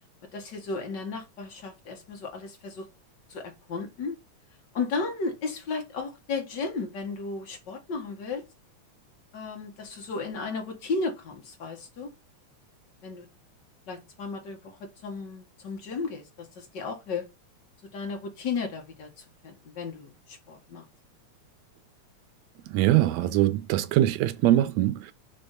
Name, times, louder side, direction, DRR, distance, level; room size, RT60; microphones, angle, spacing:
voice 1, 0.3-2.8 3.3-4.1 4.7-8.4 9.3-12.1 13.0-13.3 13.9-17.3 17.9-20.8, left 4 dB, 45° left, 1.6 m, -34 dB
voice 2, 22.7-25.1, right 14 dB, 80° right, 1.8 m, -23 dB
5.3 x 3.4 x 5.3 m
omnidirectional pair, 3.4 m